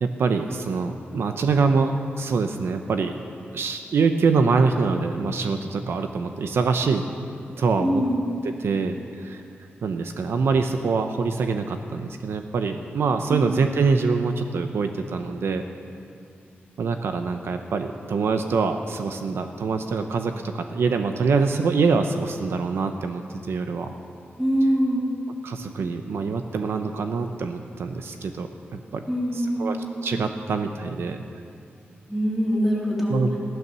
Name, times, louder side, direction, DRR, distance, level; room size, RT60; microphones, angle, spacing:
voice 1, 0.0-3.1 3.5-7.0 7.6-8.0 8.4-9.4 9.8-15.6 16.8-23.9 25.4-29.0 29.3-29.8 30.0-31.2 33.1-33.4, right 4 dB, 75° right, 6 dB, 0.8 m, -24 dB
voice 2, 7.8-8.2 13.3-13.5 24.4-25.1 29.1-29.7 32.1-33.2, equal, 10° right, -4 dB, 3.6 m, -23 dB
15.5 x 12.0 x 6.9 m, 2.4 s
wide cardioid pair, 100°, 4 cm